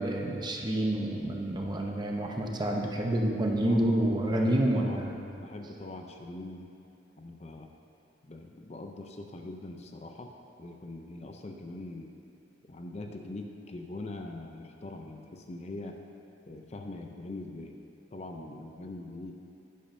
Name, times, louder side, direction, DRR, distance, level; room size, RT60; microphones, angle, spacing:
voice 1, 0.0-5.1, right 1 dB, 25° right, 0 dB, 0.8 m, -28 dB
voice 2, 3.6-5.1 5.4-6.7 7.2-7.7 8.2-10.3 10.6-12.1 12.6-16.0 16.5-17.8 18.1-19.3, left 2 dB, 35° left, 3 dB, 0.5 m, -42 dB
10.5 x 10.0 x 2.7 m, 2.9 s
head